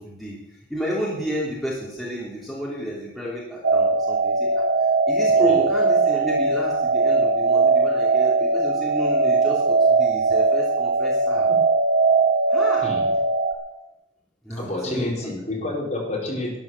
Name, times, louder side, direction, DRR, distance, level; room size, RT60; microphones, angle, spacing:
voice 1, 0.0-11.5 12.5-12.9 14.4-15.1, equal, ahead, -7 dB, 3.1 m, -31 dB
sound 1, 3.6-13.5, right 3 dB, 70° right, 1.5 m, -20 dB
voice 2, 14.6-16.6, left 1 dB, 35° left, -3 dB, 4.3 m, -28 dB
12.0 x 9.8 x 7.1 m, 0.90 s
head